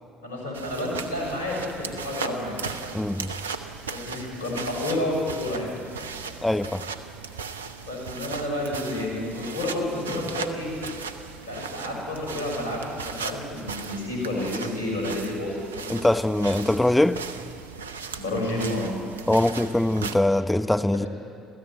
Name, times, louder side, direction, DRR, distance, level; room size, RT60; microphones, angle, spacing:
voice 1, 0.2-2.6 3.9-5.7 7.8-10.7 11.4-16.0 18.2-18.9 20.9-21.1, left 1 dB, 85° left, -1 dB, 6.6 m, -30 dB
sound 1, 0.5-20.1, right 5 dB, 85° right, 1.0 m, -37 dB
voice 2, 2.9-3.3 6.4-6.8 15.9-17.2 19.3-21.1, left 1 dB, 10° left, 11 dB, 0.9 m, -22 dB
28.0 x 14.5 x 9.2 m, 2.7 s
figure-of-eight pair, 55°, 0 cm